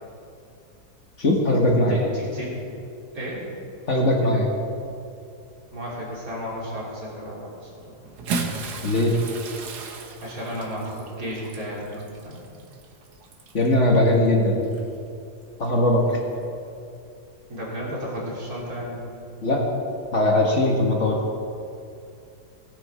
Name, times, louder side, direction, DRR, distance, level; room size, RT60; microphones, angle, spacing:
voice 1, 1.2-2.0 3.9-4.5 8.8-9.1 13.5-14.6 15.6-16.2 19.4-19.6 20.1-21.2, left 1 dB, 50° left, -1 dB, 1.8 m, -20 dB
voice 2, 1.9-2.6 3.1-3.5 5.7-7.9 10.2-12.4 17.5-19.1, equal, 60° right, -5 dB, 3.7 m, -33 dB
Bathtub (filling or washing) / Splash splatter, 8.1-13.7 14.6-14.8 16.2-16.3, right 4 dB, 80° right, 1.6 m, -35 dB
17.5 x 9.5 x 4.3 m, 2.5 s
omnidirectional pair, 1.7 m